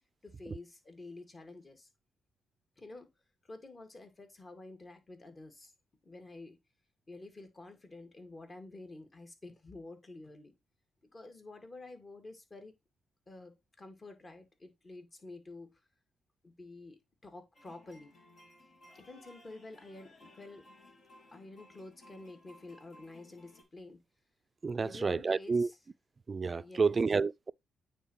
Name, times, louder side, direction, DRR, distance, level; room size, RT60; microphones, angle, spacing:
voice 1, 0.2-1.9 2.8-3.1 3.4-5.7 6.0-6.6 7.1-10.5 11.1-12.7 13.3-15.7 16.4-18.1 18.9-20.6 21.3-24.0 24.8-25.8 26.6-27.0, left 2 dB, 35° left, 2.0 m, -49 dB
sound 1, 17.5-23.6, left 2 dB, 70° left, 2.9 m, -59 dB
voice 2, 24.6-25.7 26.3-27.5, right 4 dB, 40° right, 0.3 m, -30 dB
9.1 x 3.9 x 3.1 m
supercardioid pair, 55°, 0 cm